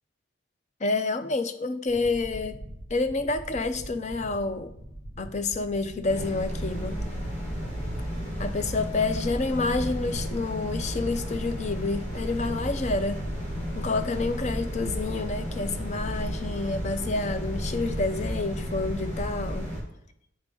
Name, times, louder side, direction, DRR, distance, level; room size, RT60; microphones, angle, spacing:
voice 1, 0.8-2.6 2.9-4.7 5.2-7.0 8.4-13.2 13.8-19.7, left 3 dB, 35° left, 10 dB, 0.5 m, -29 dB
sound 1, 1.9-12.5 12.8-12.9 14.0-19.6, right 1 dB, 60° left, 1.3 m, -43 dB
sound 2, 6.0-19.8, equal, 85° left, 2.5 m, -33 dB
8.3 x 4.9 x 3.8 m, 0.76 s
head